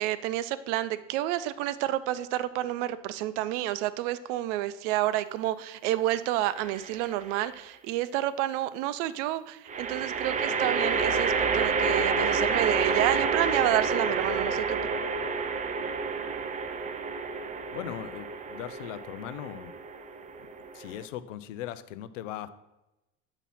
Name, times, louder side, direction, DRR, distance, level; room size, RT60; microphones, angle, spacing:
voice 1, 0.0-14.8, right 14 dB, 65° right, 15 dB, 0.6 m, -29 dB
sound 1, 6.6-7.2 9.7-21.0, right 5 dB, 20° right, 0.5 m, -29 dB
voice 2, 17.7-19.7 20.4-22.5, left 12 dB, 80° left, 14 dB, 0.6 m, -39 dB
8.2 x 3.0 x 5.7 m, 0.96 s
hypercardioid pair, 90°, 38 cm